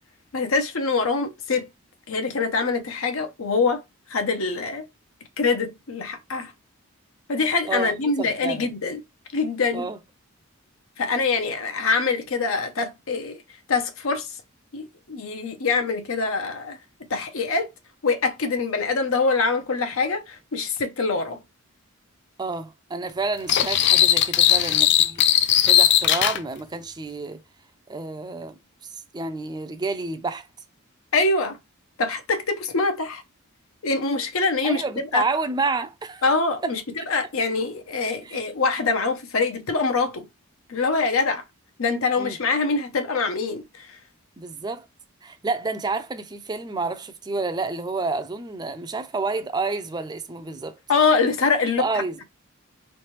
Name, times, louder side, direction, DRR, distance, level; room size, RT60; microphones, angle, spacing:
voice 1, 0.3-1.7 2.1-3.8 4.1-4.8 5.4-6.5 7.3-9.0 9.3-9.9 11.0-13.4 13.7-14.4 14.7-16.8 17.1-17.7 18.0-21.4 31.1-31.6 32.0-33.2 33.8-34.8 35.1-35.3 36.2-40.3 40.7-41.4 41.8-44.0 50.9-51.8, left 4 dB, 65° left, 0.7 m, -24 dB
voice 2, 8.2-8.7 9.7-10.0 22.4-27.4 27.9-30.5 34.6-36.2 36.6-36.7 37.0-37.1 38.2-38.4 42.2-42.4 44.4-44.9 45.2-50.8 51.8-52.2, right 3 dB, 20° right, 0.4 m, -29 dB
sound 1, 23.5-26.4, left 11 dB, 50° left, 0.3 m, -18 dB
3.3 x 3.2 x 3.1 m
head